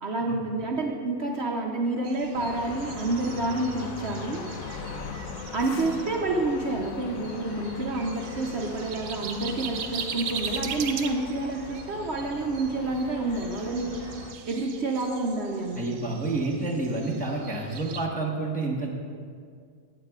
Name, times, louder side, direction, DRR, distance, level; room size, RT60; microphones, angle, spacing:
voice 1, 0.0-4.4 5.5-14.0 14.5-15.9, right 2 dB, 55° right, 0 dB, 0.8 m, -29 dB
sound 1, 2.0-18.1, right 7 dB, 80° right, 1.1 m, -40 dB
sound 2, 2.3-14.3, left 5 dB, 75° left, 1.1 m, -40 dB
voice 2, 15.7-18.9, right 2 dB, 5° left, -3 dB, 0.9 m, -29 dB
16.5 x 8.1 x 2.4 m, 2.1 s
omnidirectional pair, 1.5 m